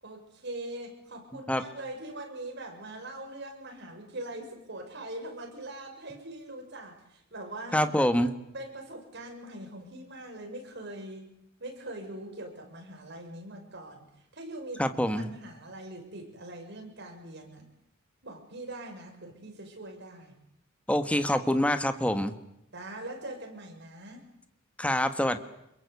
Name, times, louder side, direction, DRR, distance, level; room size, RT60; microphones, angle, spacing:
voice 1, 0.0-7.9 8.5-11.3 11.6-14.0 14.3-14.8 15.2-17.7 18.2-20.4 22.7-24.2, right 1 dB, 60° right, 3 dB, 7.0 m, -42 dB
voice 2, 7.7-8.3 14.8-15.3 20.9-22.3 24.8-25.4, left 1 dB, 5° left, 9 dB, 1.6 m, -26 dB
27.5 x 22.5 x 8.4 m, 0.81 s
head